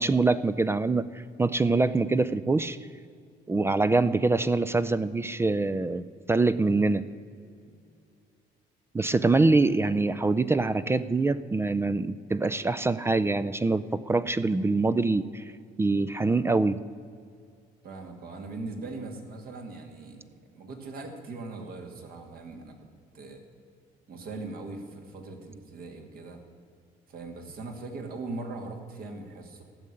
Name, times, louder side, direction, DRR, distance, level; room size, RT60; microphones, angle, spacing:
voice 1, 0.0-2.8 3.5-7.1 8.9-15.4 15.8-16.8, right 3 dB, 15° right, 14 dB, 0.4 m, -24 dB
voice 2, 17.8-20.2 20.5-22.8 23.1-23.4 24.1-26.4 27.1-29.6, right 3 dB, 60° right, 4 dB, 2.3 m, -40 dB
14.5 x 6.5 x 9.8 m, 2.3 s
cardioid pair, 110°, 17 cm